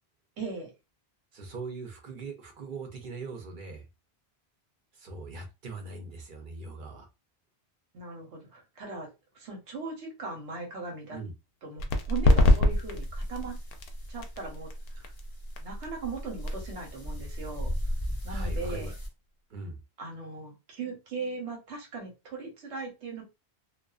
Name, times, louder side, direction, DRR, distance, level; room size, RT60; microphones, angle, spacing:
voice 1, 0.4-0.7 7.9-9.1 9.3-11.2 11.6-13.6 14.1-15.1 15.6-17.7 18.2-18.9 20.0-23.2, right 4 dB, 90° right, 0 dB, 1.2 m, -39 dB
voice 2, 1.3-3.8 4.9-7.1 11.1-11.3 18.3-19.0 19.5-19.8, right 3 dB, 55° right, 4 dB, 0.7 m, -41 dB
sound 1, 11.8-19.1, left 2 dB, 65° left, 0.7 m, -28 dB
sound 2, 12.7-19.1, equal, 25° left, 0.6 m, -37 dB
2.4 x 2.3 x 2.3 m, 0.25 s
omnidirectional pair, 1.1 m